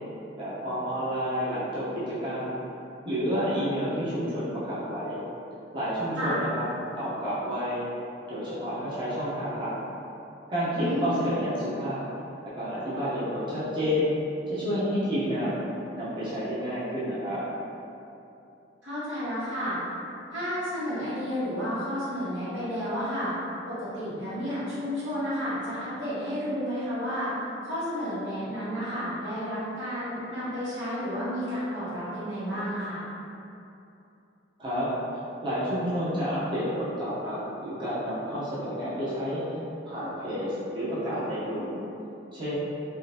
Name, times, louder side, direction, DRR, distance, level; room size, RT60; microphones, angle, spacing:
voice 1, 0.4-2.6 3.0-5.2 5.7-6.6 7.0-7.8 8.3-9.7 10.5-12.0 12.5-14.1 14.5-15.6 15.9-17.4 34.6-39.6 39.8-41.8 42.3-42.5, equal, 25° right, -12 dB, 0.8 m, -30 dB
voice 2, 10.7-11.1 18.8-19.8 20.3-23.3 23.7-27.3 27.6-33.0, equal, 80° right, -12 dB, 1.4 m, -31 dB
3.6 x 2.5 x 2.8 m, 2.8 s
head